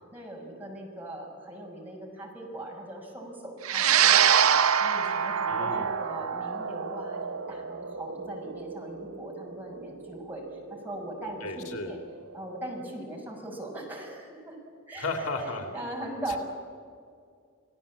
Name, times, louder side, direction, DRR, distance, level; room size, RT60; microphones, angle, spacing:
voice 1, 0.1-4.4 4.8-10.4 10.7-12.0 12.3-14.6 14.9-16.4, right 1 dB, 10° right, -2 dB, 6.3 m, -40 dB
sound 1, 3.6-12.2, right 8 dB, 75° right, 0.9 m, -26 dB
voice 2, 5.5-5.9 11.4-11.9 15.0-15.7, left 3 dB, 85° left, 4 dB, 3.2 m, -34 dB
28.5 x 18.0 x 8.7 m, 2.2 s
head